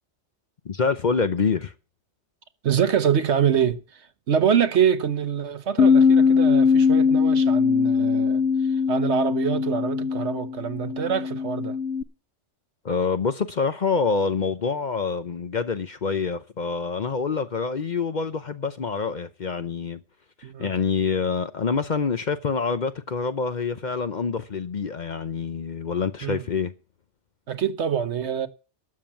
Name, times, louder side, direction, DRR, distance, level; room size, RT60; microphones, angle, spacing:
voice 1, 0.6-1.7 12.8-20.0 20.6-26.7, left 5 dB, 45° left, 0.7 m, -26 dB
voice 2, 2.6-11.8 20.4-20.7 26.2-26.4 27.5-28.5, right 8 dB, 70° right, 1.3 m, -25 dB
Bass guitar, 5.8-12.0, left 6 dB, 80° left, 1.2 m, -21 dB
12.5 x 7.4 x 7.4 m
omnidirectional pair, 1.2 m